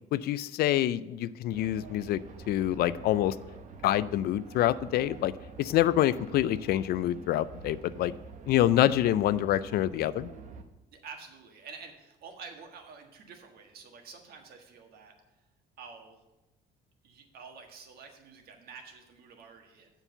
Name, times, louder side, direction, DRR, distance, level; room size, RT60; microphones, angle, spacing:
voice 1, 0.1-2.2 2.5-3.3 3.8-5.3 5.6-8.1 8.5-10.3, left 13 dB, 65° left, 17 dB, 0.4 m, -26 dB
sound 1, 1.5-10.6, right 5 dB, 50° right, 0.9 m, -47 dB
voice 2, 10.9-15.1 15.8-16.2 17.0-19.9, right 5 dB, 65° right, 3 dB, 1.5 m, -48 dB
7.3 x 5.4 x 6.8 m, 0.99 s
cardioid pair, 110°, 17 cm